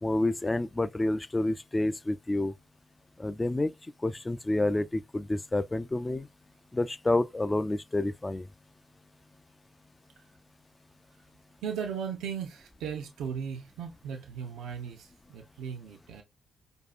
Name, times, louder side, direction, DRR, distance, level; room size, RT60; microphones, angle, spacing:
voice 1, 0.0-2.5 3.2-3.7 4.0-6.3 6.7-8.4, left 2 dB, 25° left, 0.4 m, -29 dB
voice 2, 11.6-16.2, right 7 dB, 80° right, 0.6 m, -37 dB
4.7 x 2.6 x 2.4 m
hypercardioid pair, 45°, 0 cm